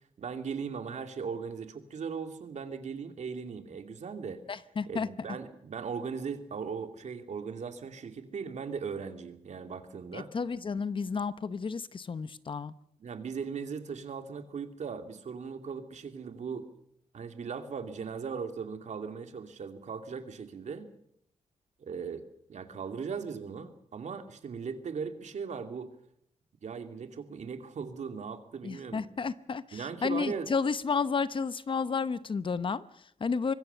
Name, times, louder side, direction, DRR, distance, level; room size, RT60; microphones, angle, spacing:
voice 1, 0.2-4.4 4.9-10.3 13.0-16.7 17.1-20.9 21.8-22.2 22.5-25.9 26.6-29.1 29.7-30.5, right 6 dB, 65° right, 7 dB, 2.6 m, -38 dB
voice 2, 4.5-5.1 10.1-12.7 28.6-33.5, left 5 dB, 40° left, 15 dB, 0.9 m, -32 dB
25.0 x 21.5 x 6.9 m, 0.72 s
wide cardioid pair, 140°, 13 cm